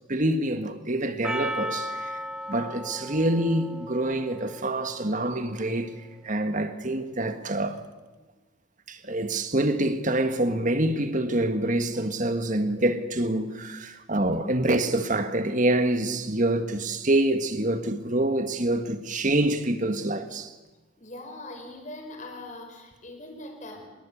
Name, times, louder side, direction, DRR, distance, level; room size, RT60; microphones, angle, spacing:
voice 1, 0.1-2.1 2.5-6.0 6.2-7.8 8.9-20.5, right 1 dB, 40° right, 1.7 m, -26 dB
Percussion, 1.2-5.7, equal, 5° right, 1.0 m, -36 dB
voice 2, 21.0-23.9, left 1 dB, 35° left, 5.0 m, -41 dB
24.0 x 22.0 x 8.6 m
head